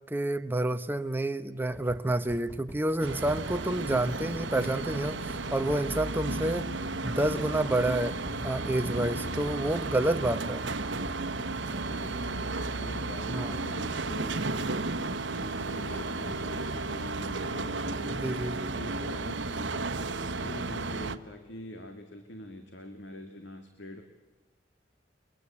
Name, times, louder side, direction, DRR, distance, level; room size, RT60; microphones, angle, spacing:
voice 1, 0.1-6.7 7.0-10.7 13.3-13.5 18.2-18.7, right 1 dB, 10° right, 9 dB, 1.0 m, -29 dB
sound 1, 1.7-4.6 4.9-5.0 5.3-6.2 6.5-6.6 6.9-9.7 10.1-11.2, equal, 15° left, 2.0 m, -46 dB
sound 2, 3.0-21.2, right 3 dB, 75° right, 1.1 m, -33 dB
Microwave oven, 3.1-18.1, left 1 dB, 50° left, 1.5 m, -50 dB
voice 2, 11.9-12.3 12.8-24.0, left 1 dB, 70° left, 6 dB, 2.1 m, -44 dB
29.5 x 23.0 x 8.6 m, 1.2 s
head